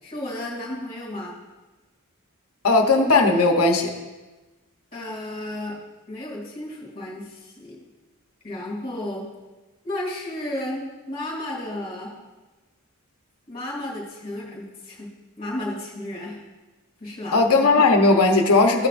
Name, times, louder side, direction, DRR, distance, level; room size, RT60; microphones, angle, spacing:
voice 1, 0.0-1.4 4.9-5.8 6.1-7.8 8.4-9.3 9.8-12.1 13.5-15.1 15.4-16.4 17.0-17.4, left 1 dB, 25° left, -5 dB, 2.6 m, -33 dB
voice 2, 2.6-3.9 17.3-18.9, left 3 dB, 80° left, 3 dB, 1.0 m, -17 dB
13.5 x 8.9 x 2.6 m, 1.2 s
head